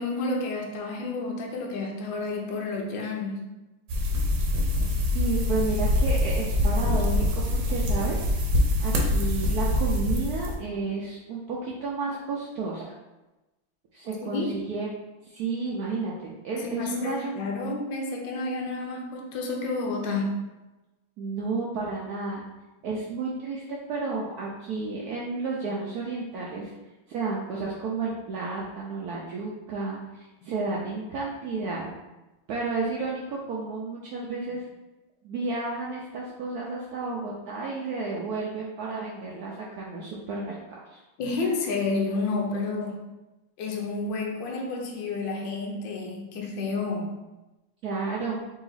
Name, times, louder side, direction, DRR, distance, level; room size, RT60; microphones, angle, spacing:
voice 1, 0.0-3.4 14.2-14.5 16.6-20.4 30.4-30.5 41.2-43.0 43.6-47.1, left 3 dB, 70° left, 0 dB, 1.3 m, -30 dB
sound 1, 3.9-10.5, left 1 dB, 65° right, 1.2 m, -24 dB
voice 2, 4.9-8.3 8.8-12.9 13.9-14.9 15.2-17.3 21.2-22.5 22.8-26.7 27.1-31.9 32.5-34.6 35.2-41.0 47.8-48.4, right 3 dB, 85° right, -4 dB, 0.8 m, -32 dB
3.8 x 2.9 x 4.0 m, 1.1 s
omnidirectional pair, 2.3 m